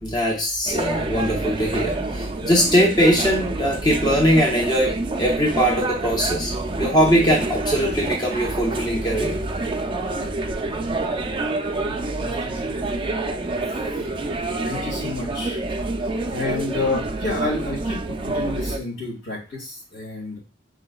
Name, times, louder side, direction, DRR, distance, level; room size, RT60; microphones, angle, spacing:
voice 1, 0.0-6.5 6.8-9.4, equal, 20° left, -1 dB, 0.7 m, -21 dB
sound 1, 0.6-18.8, right 2 dB, 25° right, 0.4 m, -27 dB
voice 2, 11.8-12.8 14.6-15.6 16.3-18.0 18.3-20.4, left 3 dB, 75° left, -3 dB, 2.2 m, -29 dB
5.0 x 3.7 x 2.3 m, 0.32 s
head